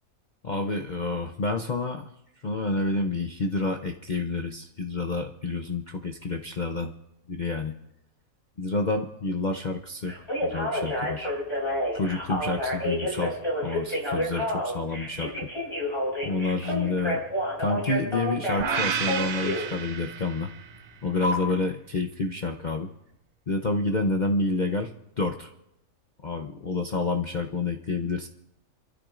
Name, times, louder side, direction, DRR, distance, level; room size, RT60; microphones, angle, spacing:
voice 1, 0.4-2.1 2.4-6.9 7.3-7.8 8.6-11.3 11.9-15.5 16.2-17.2 17.6-20.5 21.0-22.9 23.5-24.9 25.2-25.5 26.2-28.3, left 3 dB, 40° left, 4 dB, 0.7 m, -29 dB
Telephone, 10.1-19.7 21.2-21.3, equal, 20° left, 5.4 m, -29 dB
sound 1, 18.6-20.8, right 6 dB, 50° right, 0.7 m, -31 dB
28.5 x 13.5 x 2.5 m, 0.82 s
omnidirectional pair, 1.5 m